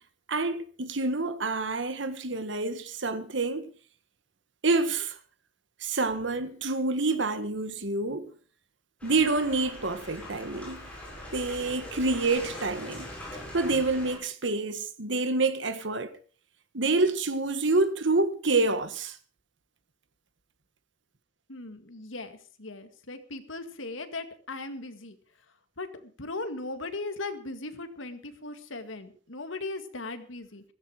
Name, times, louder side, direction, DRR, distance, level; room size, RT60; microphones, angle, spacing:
voice 1, 0.3-3.7 4.6-5.1 5.8-8.3 9.0-10.9 11.3-13.1 13.5-16.1 16.7-19.2, right 3 dB, 65° right, 1.5 m, -27 dB
sound 1, 9.0-14.2, left 1 dB, 5° left, 7.8 m, -42 dB
voice 2, 21.5-25.2 25.8-30.6, left 2 dB, 75° left, 2.0 m, -38 dB
16.0 x 15.0 x 5.0 m
head